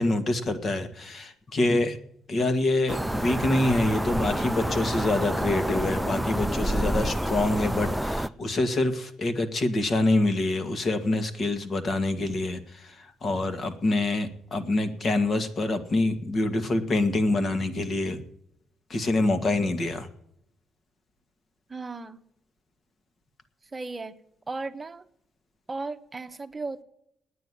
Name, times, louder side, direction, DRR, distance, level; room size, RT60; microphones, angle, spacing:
voice 1, 0.0-2.0 2.3-18.2 18.9-20.1, left 2 dB, 45° left, 9 dB, 1.8 m, -26 dB
sound 1, 2.9-8.3, right 1 dB, 5° right, 0.4 m, -28 dB
voice 2, 21.7-22.2 23.7-24.1 24.5-25.0 25.7-26.8, right 3 dB, 25° right, 9 dB, 1.0 m, -35 dB
9.4 x 9.3 x 9.7 m, 0.75 s
cardioid pair, 90°, 0 cm